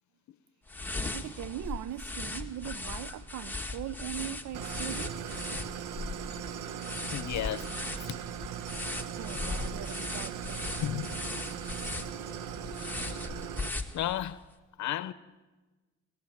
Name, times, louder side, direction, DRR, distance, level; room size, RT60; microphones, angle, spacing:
sound 1, 0.7-14.4, left 3 dB, 5° left, 1.7 m, -38 dB
voice 1, 1.1-5.2 9.1-10.7, right 12 dB, 70° right, 0.6 m, -40 dB
Idling, 4.5-13.7, right 9 dB, 90° right, 1.0 m, -39 dB
voice 2, 7.1-7.7 8.1-8.2 10.8-11.1 12.8-13.3 13.9-14.4 14.8-15.1, left 12 dB, 70° left, 0.7 m, -33 dB
27.0 x 11.5 x 9.0 m
cardioid pair, 90°, 30 cm